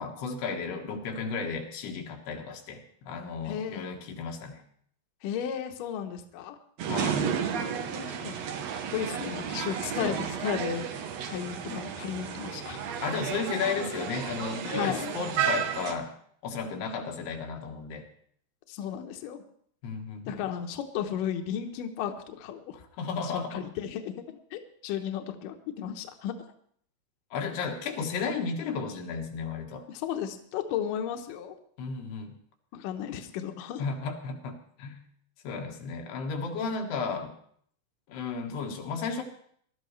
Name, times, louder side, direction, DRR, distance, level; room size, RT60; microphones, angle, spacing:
voice 1, 0.0-4.6 6.9-7.2 13.0-16.1 16.4-18.1 19.8-20.4 23.0-23.7 27.3-29.9 31.8-32.4 33.8-35.0 35.4-37.4 38.1-39.2, left 5 dB, 90° left, 2 dB, 3.5 m, -34 dB
voice 2, 3.5-3.9 5.2-6.6 7.9-8.4 8.7-12.8 14.6-15.1 18.7-19.4 20.3-22.8 23.2-26.3 29.9-31.6 32.7-33.8, left 9 dB, 70° left, 5 dB, 2.4 m, -34 dB
sound 1, 6.8-15.9, right 7 dB, 80° right, 1.5 m, -32 dB
20.5 x 12.5 x 3.2 m, 0.63 s
omnidirectional pair, 4.5 m